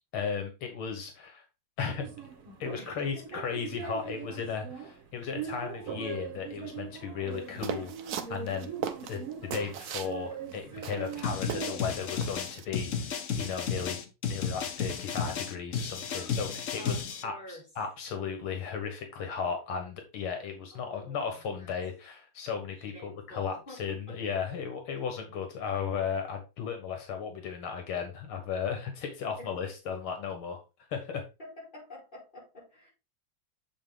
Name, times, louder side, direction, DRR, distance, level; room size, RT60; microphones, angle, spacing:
voice 1, 0.1-1.4 1.8-2.1 2.6-8.7 9.1-14.0 14.3-30.6 30.9-31.3, left 6 dB, 85° left, 5 dB, 2.2 m, -35 dB
sound 1, 2.0-11.8, right 7 dB, 80° right, 2.7 m, -41 dB
voice 2, 2.7-3.4 10.7-10.8 16.1-17.7 20.7-21.7 22.9-24.2 29.4-29.6 31.4-32.9, left 1 dB, 20° left, -6 dB, 5.1 m, -49 dB
sound 2, 7.6-10.1 10.5-10.6 10.8-11.9 12.2-12.7, right 8 dB, 65° right, 1.0 m, -37 dB
sound 3, 11.2-17.2, left 6 dB, 60° left, 0.8 m, -33 dB
7.8 x 4.9 x 3.7 m, 0.28 s
omnidirectional pair, 2.3 m